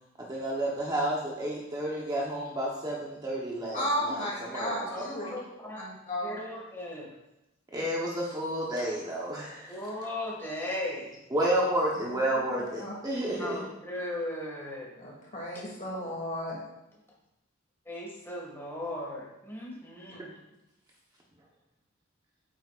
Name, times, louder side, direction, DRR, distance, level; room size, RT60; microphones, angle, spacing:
voice 1, 0.2-5.3 7.7-9.8 11.3-13.6, right 1 dB, 20° right, -3 dB, 1.1 m, -31 dB
voice 2, 3.7-5.4 5.7-6.4 12.3-12.4 12.8-12.9 15.0-16.6, equal, 40° left, -3 dB, 2.5 m, -34 dB
voice 3, 4.9-5.8 6.2-7.1 9.7-11.2 13.4-14.9 17.9-20.3, left 1 dB, 10° left, -3 dB, 2.0 m, -37 dB
9.1 x 8.1 x 2.5 m, 0.89 s
head